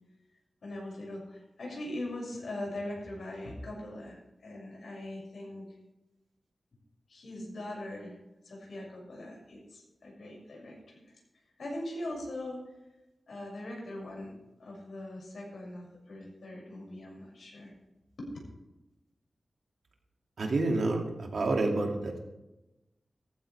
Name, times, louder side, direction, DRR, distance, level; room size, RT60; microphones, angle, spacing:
voice 1, 0.6-5.7 7.1-8.2 8.4-11.1 11.6-12.6 13.3-17.7 18.2-18.3, left 1 dB, 85° left, -2 dB, 6.3 m, -41 dB
voice 2, 20.4-22.1, right 2 dB, 85° right, 1 dB, 2.5 m, -28 dB
17.5 x 14.5 x 3.4 m, 0.99 s
wide cardioid pair, 120°, 0 cm